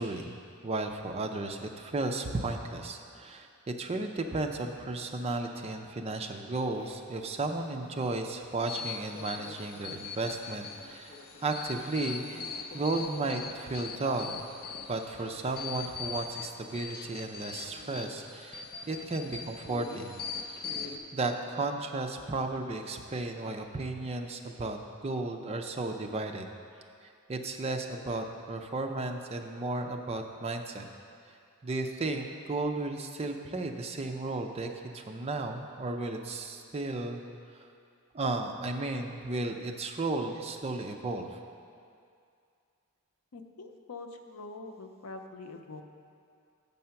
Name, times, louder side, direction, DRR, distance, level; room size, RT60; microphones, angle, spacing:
voice 1, 0.0-11.2 11.4-12.5 12.7-14.5 14.9-20.1 21.1-26.5 27.3-30.9 31.6-37.2 38.1-41.4, right 2 dB, 30° right, 4 dB, 0.5 m, -34 dB
sound 1, 6.7-13.1, left 2 dB, 25° left, 0.9 m, -56 dB
sound 2, 8.7-21.0, left 5 dB, 45° left, 0.5 m, -41 dB
voice 2, 43.3-45.8, left 3 dB, 85° left, 5 dB, 0.6 m, -44 dB
7.5 x 5.4 x 5.7 m, 2.4 s
head